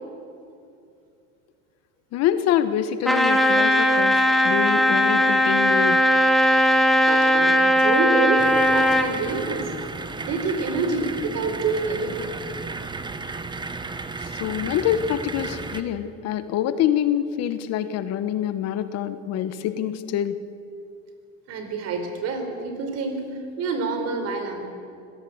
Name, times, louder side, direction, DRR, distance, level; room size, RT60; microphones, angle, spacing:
voice 1, 2.1-6.0 14.2-20.4, left 10 dB, 60° left, 12 dB, 1.3 m, -25 dB
Trumpet, 3.0-9.1, equal, ahead, 2.0 m, -18 dB
voice 2, 6.8-9.7 10.2-12.3 21.5-23.3 23.6-24.7, right 4 dB, 60° right, 5 dB, 4.6 m, -27 dB
sound 1, 8.4-15.8, right 3 dB, 15° right, 1.4 m, -34 dB
25.5 x 17.0 x 8.0 m, 2.5 s
supercardioid pair, 110°, 29 cm